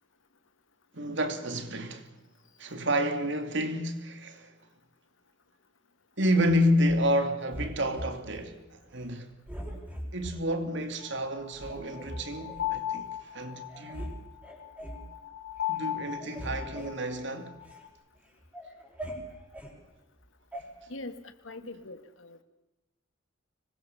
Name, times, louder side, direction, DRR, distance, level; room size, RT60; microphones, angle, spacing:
voice 1, 0.9-2.1 2.6-4.5 6.2-9.3 10.1-14.2 15.7-17.6, equal, 65° right, 2.7 m, -30 dB
sound 1, 6.4-7.1 7.5-8.5 8.9-9.1 9.5-10.4 10.9-11.0 11.5-12.7 13.3-13.4 13.7-14.1 14.4-15.1 15.5-15.8 16.0-17.8 18.2-19.7 20.5-20.6, equal, 5° right, 5.1 m, -41 dB
sound 2, 11.0-17.9, left 13 dB, 55° left, 3.5 m, -37 dB
voice 2, 20.9-22.4, left 2 dB, 80° left, 1.9 m, -42 dB
25.5 x 21.0 x 7.2 m
head